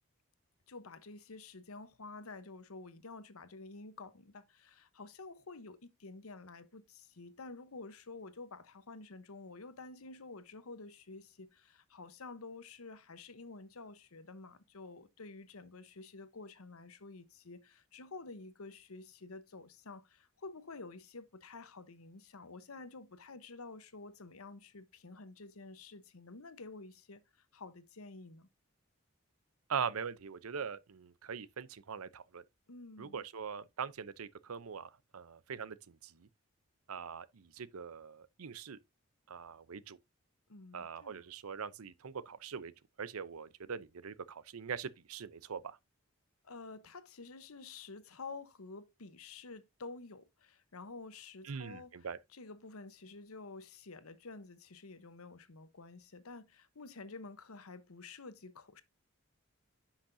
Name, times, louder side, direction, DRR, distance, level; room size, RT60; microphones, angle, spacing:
voice 1, 0.7-28.5 32.7-33.2 40.5-41.2 46.4-58.8, left 3 dB, 85° left, 1.0 m, -50 dB
voice 2, 29.7-32.4 33.0-36.3 36.9-38.8 39.3-40.0 40.7-42.7 43.0-45.8 51.5-52.2, right 6 dB, 85° right, 0.6 m, -42 dB
10.0 x 5.9 x 2.7 m
head